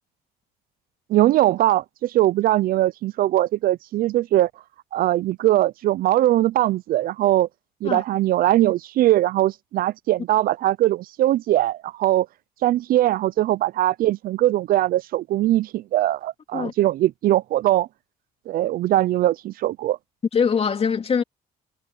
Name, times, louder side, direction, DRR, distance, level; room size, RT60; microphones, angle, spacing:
voice 1, 1.1-4.5 4.9-7.5 7.8-12.3 12.6-17.9 18.5-20.0, right 14 dB, 60° right, 0.4 m, -21 dB
voice 2, 20.3-21.2, left 6 dB, 35° left, 3.0 m, -22 dB
cardioid pair, 110°, 17 cm